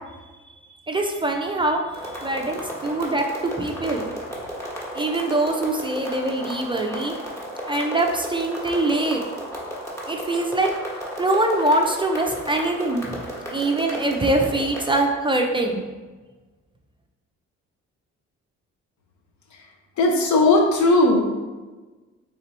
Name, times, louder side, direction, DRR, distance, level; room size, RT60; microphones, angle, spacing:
voice 1, 0.9-1.8 2.2-4.1 4.9-7.1 7.6-9.2 10.1-10.7 11.2-13.2 13.5-15.8, right 2 dB, 15° right, 2 dB, 0.4 m, -23 dB
sound 1, 1.9-15.0, equal, 10° left, 1.1 m, -34 dB
voice 2, 20.0-21.2, left 2 dB, 70° left, 1 dB, 0.8 m, -18 dB
3.4 x 2.9 x 4.0 m, 1.3 s
cardioid pair, 90°, 30 cm